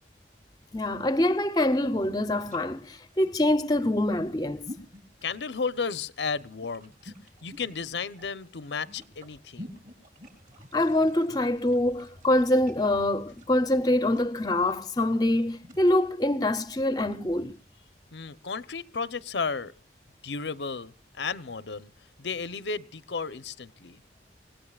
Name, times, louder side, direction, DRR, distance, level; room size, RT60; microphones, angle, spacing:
voice 1, 0.7-4.7 10.7-17.5, left 1 dB, 20° left, 0.7 m, -25 dB
sound 1, 1.2-15.9, left 1 dB, 45° right, 3.6 m, -49 dB
voice 2, 5.2-7.1 7.4-9.8 18.1-19.7 20.2-21.9 22.2-24.0, left 5 dB, 75° left, 0.8 m, -33 dB
28.0 x 17.5 x 2.4 m
head